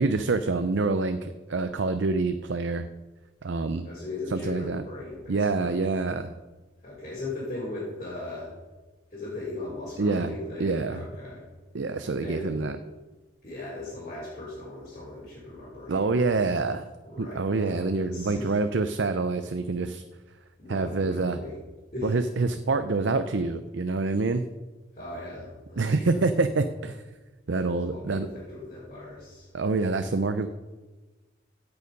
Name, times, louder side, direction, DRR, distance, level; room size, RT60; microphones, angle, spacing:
voice 1, 0.0-2.9 3.4-3.9 4.3-4.8 5.3-6.3 10.0-11.1 11.7-12.8 15.9-16.9 17.2-20.0 20.7-21.4 22.0-24.4 25.8-27.0 27.5-28.3 29.5-30.5, right 3 dB, 70° right, 9 dB, 0.6 m, -26 dB
voice 2, 3.8-5.7 6.8-8.5 9.1-11.4 12.2-12.5 13.4-16.1 17.0-18.6 20.6-21.5 21.9-22.2 24.9-26.2 27.9-29.5, left 2 dB, 35° left, -9 dB, 4.7 m, -38 dB
16.5 x 7.0 x 5.3 m, 1.2 s
head